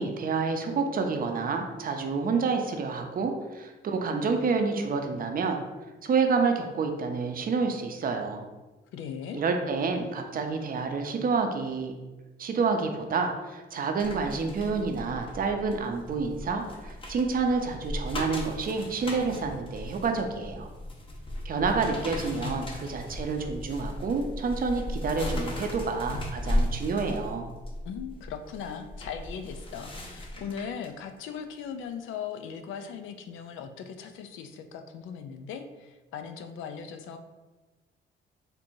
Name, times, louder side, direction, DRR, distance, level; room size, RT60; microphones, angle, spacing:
voice 1, 0.0-5.6 6.0-8.5 9.3-11.9 12.4-20.7 21.4-27.5, right 4 dB, 45° right, 4 dB, 0.5 m, -28 dB
voice 2, 8.9-9.4 27.8-37.2, left 7 dB, 80° left, 7 dB, 0.4 m, -39 dB
sound 1, 14.0-30.9 31.3-31.5, left 1 dB, 25° left, 0.7 m, -36 dB
4.4 x 2.6 x 2.6 m, 1.2 s
cardioid pair, 90°, 20 cm